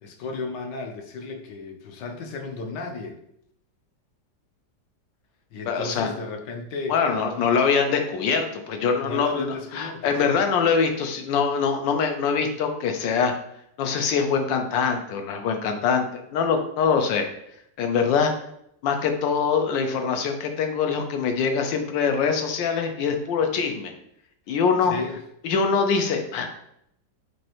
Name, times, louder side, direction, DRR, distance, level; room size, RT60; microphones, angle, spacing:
voice 1, 0.0-3.2 5.5-7.0 7.3-7.5 9.0-10.4 24.9-25.2, left 3 dB, 75° left, 4 dB, 1.2 m, -34 dB
voice 2, 5.7-6.1 6.9-13.3 13.8-17.3 17.8-18.3 18.8-23.9 24.5-24.9 25.4-26.5, left 6 dB, 90° left, 5 dB, 1.3 m, -23 dB
6.2 x 2.7 x 2.9 m, 0.75 s
omnidirectional pair, 2.0 m